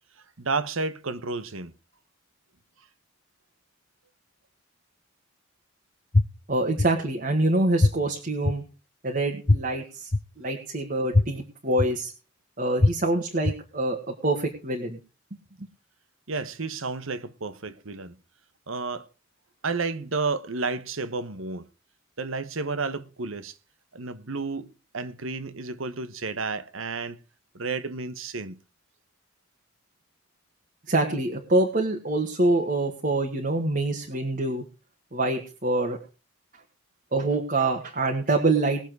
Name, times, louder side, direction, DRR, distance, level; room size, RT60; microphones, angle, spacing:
voice 1, 0.4-1.7 16.3-18.2 18.7-19.1 19.6-21.7 22.2-23.6 23.9-27.2 27.5-28.6, right 4 dB, 90° right, 1.2 m, -31 dB
sound 1, 6.1-6.2 6.8-6.9 7.8-7.9 8.4-8.5 9.5-9.6 10.1-10.2 11.1-11.2 11.8-11.9 12.8-12.9 13.4-13.5, left 2 dB, 35° left, 0.8 m, -18 dB
voice 2, 6.5-8.6 9.0-10.1 10.4-12.1 12.6-15.0 30.9-34.6 35.1-36.0 37.1-38.8, right 2 dB, 45° right, 1.8 m, -25 dB
20.0 x 7.3 x 4.7 m
head